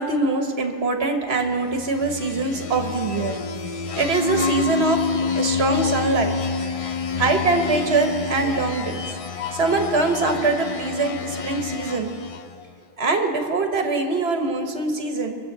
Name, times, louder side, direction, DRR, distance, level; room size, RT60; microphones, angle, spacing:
voice 1, 0.0-3.3 3.9-5.0 5.3-6.3 6.6-6.9 7.2-9.0 9.5-12.1 13.0-15.3, right 3 dB, 70° right, 4 dB, 1.6 m, -23 dB
sound 1, 1.7-12.6, left 5 dB, 40° left, 0.5 m, -27 dB
23.0 x 7.7 x 6.8 m, 2.4 s
omnidirectional pair, 1.1 m